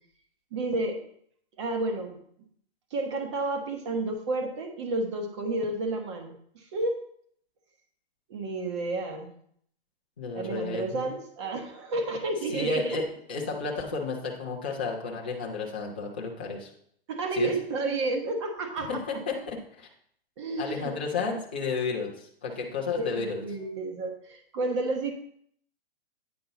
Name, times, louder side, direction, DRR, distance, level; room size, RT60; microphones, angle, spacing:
voice 1, 0.5-1.0 1.6-2.2 2.9-7.0 8.3-9.3 10.3-13.0 17.1-19.0 20.4-20.9 22.9-25.1, right 2 dB, 30° right, 4 dB, 1.1 m, -31 dB
voice 2, 10.2-11.1 12.5-16.7 17.3-17.5 18.9-19.9 20.6-23.4, left 4 dB, 10° left, -3 dB, 0.3 m, -32 dB
8.8 x 5.3 x 3.9 m, 0.64 s
hypercardioid pair, 165°, 31 cm